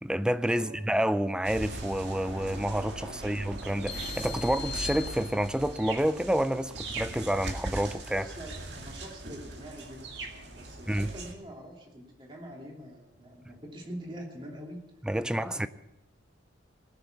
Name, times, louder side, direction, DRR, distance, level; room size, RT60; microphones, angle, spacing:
voice 1, 0.0-8.3 10.9-11.1 15.1-15.7, equal, 5° right, 0.4 m, -29 dB
sound 1, 1.4-11.3, right 2 dB, 60° right, 2.1 m, -40 dB
sound 2, 3.9-5.8, left 8 dB, 55° left, 1.3 m, -40 dB
voice 2, 8.1-14.8 15.2-15.7, equal, 25° right, 2.9 m, -45 dB
19.0 x 7.0 x 8.2 m
head